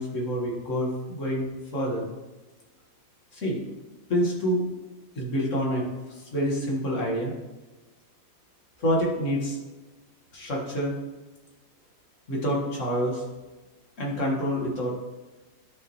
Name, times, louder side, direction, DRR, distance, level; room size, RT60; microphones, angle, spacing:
voice 1, 0.0-2.1 3.3-3.7 4.1-4.7 5.2-5.8 6.1-7.3 8.8-9.6 10.3-11.0 12.3-13.2 14.0-14.9, equal, 45° left, -3 dB, 2.2 m, -27 dB
11.5 x 6.4 x 3.2 m, 1.2 s
omnidirectional pair, 2.0 m